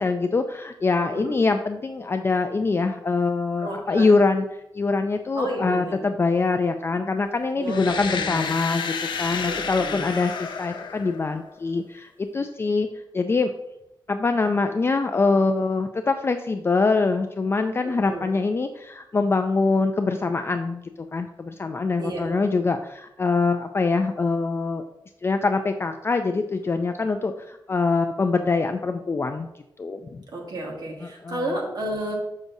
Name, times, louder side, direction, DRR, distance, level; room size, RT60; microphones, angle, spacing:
voice 1, 0.0-12.9 13.1-13.5 14.1-20.8 21.1-24.8 25.2-29.5 29.8-30.2 31.0-31.4, left 3 dB, 30° left, 6 dB, 0.3 m, -24 dB
voice 2, 1.0-1.4 3.6-4.1 5.3-6.0 7.6-8.5 9.4-10.0 17.8-18.3 22.0-22.3 30.3-32.2, right 1 dB, 60° right, 0 dB, 1.5 m, -32 dB
sound 1, 7.6-11.6, left 6 dB, 85° left, 0.5 m, -31 dB
6.4 x 6.1 x 2.7 m, 0.86 s
wide cardioid pair, 110°, 8 cm